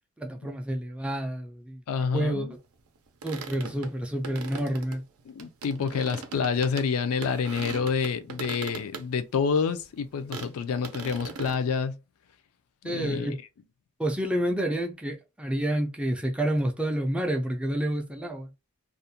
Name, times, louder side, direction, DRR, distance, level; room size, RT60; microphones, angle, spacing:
voice 1, 0.2-1.8 2.1-2.5 3.2-5.0 12.8-13.4 14.0-18.5, right 1 dB, 5° right, 0.3 m, -29 dB
voice 2, 1.9-2.5 5.3-12.0 12.8-13.4, left 5 dB, 70° left, 0.4 m, -28 dB
sound 1, 3.0-6.9 7.2-9.0 9.4-9.5 9.8-9.9 10.3-10.5 10.8-11.6, right 4 dB, 75° right, 0.5 m, -39 dB
2.4 x 2.1 x 2.6 m
head